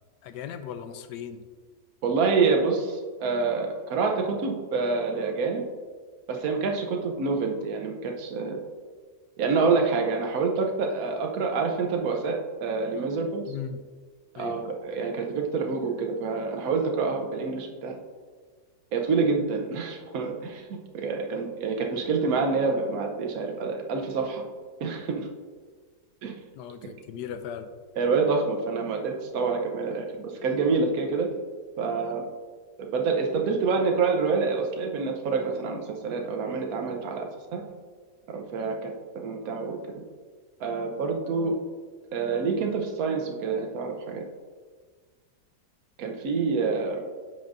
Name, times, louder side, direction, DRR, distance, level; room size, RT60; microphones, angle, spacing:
voice 1, 0.2-1.5 13.5-13.8 14.4-14.6 26.5-27.7, left 8 dB, 85° left, 10 dB, 1.2 m, -37 dB
voice 2, 2.0-5.6 6.3-8.6 9.4-13.5 14.4-18.0 18.9-20.7 20.9-24.4 24.8-25.3 26.2-26.3 28.0-31.3 31.8-32.2 32.9-37.6 38.3-38.9 39.2-40.0 40.6-41.5 42.1-44.2 46.0-47.0, right 4 dB, 65° right, 2 dB, 1.2 m, -27 dB
8.8 x 6.1 x 2.6 m, 1.5 s
omnidirectional pair, 1.7 m